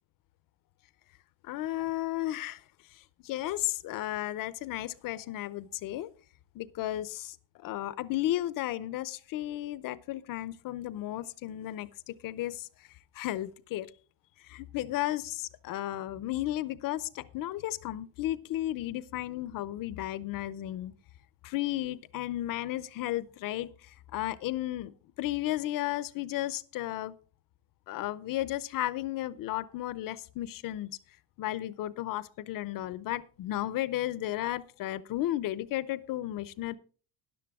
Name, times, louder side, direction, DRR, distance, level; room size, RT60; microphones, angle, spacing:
voice 1, 1.4-2.6 3.2-6.1 6.5-12.7 13.1-13.9 14.5-20.9 21.4-27.1 27.9-30.9 31.4-36.8, left 14 dB, 45° left, 18 dB, 0.7 m, -34 dB
13.0 x 11.0 x 3.6 m, 0.39 s
cardioid pair, 150°, 48 cm